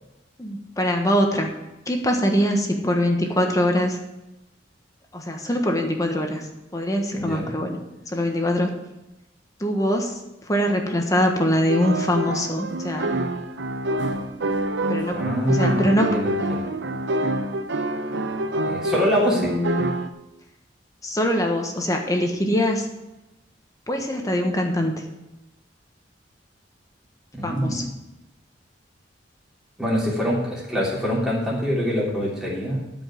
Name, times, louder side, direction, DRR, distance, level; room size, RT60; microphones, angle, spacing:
voice 1, 0.4-1.5 1.9-4.0 5.1-6.5 6.7-7.8 8.1-8.8 9.6-13.2 14.9-15.2 15.5-16.2 19.2-19.8 21.0-22.9 23.9-25.0 27.4-27.9, equal, 20° left, 3 dB, 1.3 m, -23 dB
voice 2, 7.1-7.5 15.1-16.7 18.6-19.5 27.3-27.8 29.8-32.8, equal, 5° right, -7 dB, 3.4 m, -24 dB
sound 1, 11.7-20.1, right 1 dB, 70° right, 0.8 m, -26 dB
13.0 x 5.4 x 7.4 m, 0.98 s
head